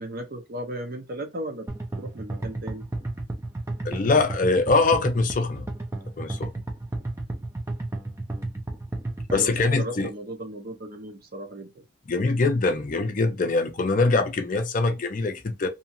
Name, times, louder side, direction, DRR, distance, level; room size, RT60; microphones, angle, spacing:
voice 1, 0.0-1.7 2.0-2.8 9.3-11.8, right 1 dB, 50° right, 0.7 m, -35 dB
sound 1, 1.7-9.6, right 2 dB, 15° right, 0.4 m, -32 dB
voice 2, 3.8-5.7 6.2-6.5 9.3-10.1 12.1-15.7, left 3 dB, 40° left, 0.4 m, -23 dB
2.8 x 2.4 x 2.7 m
head